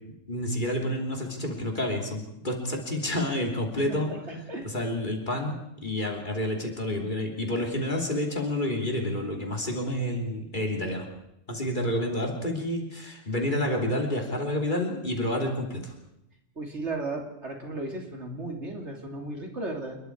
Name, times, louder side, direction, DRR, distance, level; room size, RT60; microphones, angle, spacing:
voice 1, 0.3-4.1 4.6-11.0 11.5-15.9, left 1 dB, 40° left, 1 dB, 3.4 m, -29 dB
voice 2, 3.7-4.7 16.6-20.0, right 2 dB, 60° right, 1 dB, 3.5 m, -35 dB
28.0 x 21.5 x 4.8 m, 0.86 s
omnidirectional pair, 1.3 m